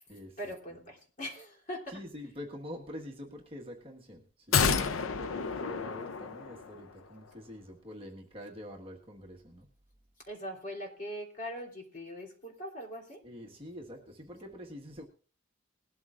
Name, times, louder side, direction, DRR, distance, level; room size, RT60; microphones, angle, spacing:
voice 1, 0.4-2.0 10.3-13.2, equal, 40° left, 3.4 m, -41 dB
voice 2, 1.9-4.2 4.5-9.6 13.2-15.0, left 1 dB, 30° right, 1.6 m, -45 dB
sound 1, 4.5-6.9 7.2-7.3, left 6 dB, 80° left, 0.6 m, -30 dB
20.0 x 13.0 x 2.5 m
head